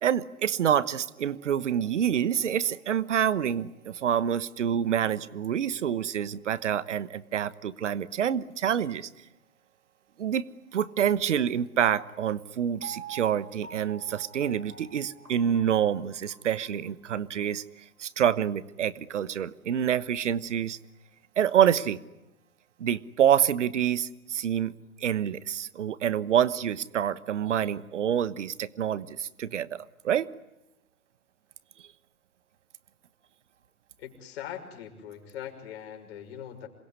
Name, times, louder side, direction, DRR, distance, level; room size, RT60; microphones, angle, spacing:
voice 1, 0.0-9.1 10.2-10.5 10.7-17.6 18.0-20.8 21.4-22.0 22.8-30.3, right 9 dB, 55° right, 17 dB, 1.3 m, -27 dB
Piano, 12.8-16.9 17.4-17.5, right 7 dB, 90° right, 3.8 m, -46 dB
voice 2, 34.0-36.7, left 10 dB, 45° left, 4 dB, 6.0 m, -41 dB
27.0 x 22.5 x 9.8 m, 0.97 s
figure-of-eight pair, 115°, 43 cm